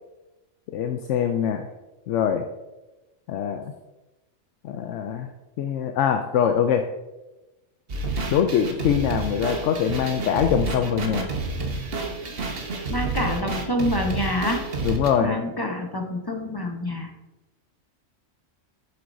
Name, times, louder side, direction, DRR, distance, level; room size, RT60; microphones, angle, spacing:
voice 1, 0.7-1.7 2.1-2.4 3.3-3.7 4.6-5.3 5.6-6.9 8.3-11.3 14.8-15.3, left 8 dB, 70° left, 6 dB, 0.9 m, -23 dB
sound 1, 7.9-15.1, right 3 dB, 45° right, 1.2 m, -29 dB
voice 2, 12.9-14.6 15.2-17.1, left 1 dB, 20° left, 2 dB, 0.8 m, -27 dB
9.4 x 7.9 x 2.7 m, 1.0 s
omnidirectional pair, 1.4 m